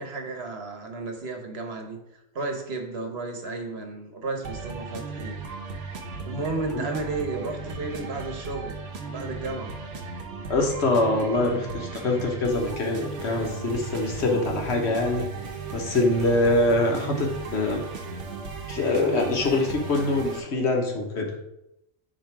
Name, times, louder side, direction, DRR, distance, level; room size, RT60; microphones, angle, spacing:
voice 1, 0.0-2.0 2.3-5.4 6.2-8.8 9.1-9.7, right 3 dB, 60° right, 3 dB, 1.2 m, -33 dB
sound 1, 4.4-20.4, right 4 dB, 80° right, 1.1 m, -36 dB
voice 2, 10.5-15.3 15.7-17.8 18.7-21.3, left 2 dB, 65° left, 2 dB, 1.3 m, -24 dB
8.8 x 3.0 x 4.6 m, 0.85 s
omnidirectional pair, 1.3 m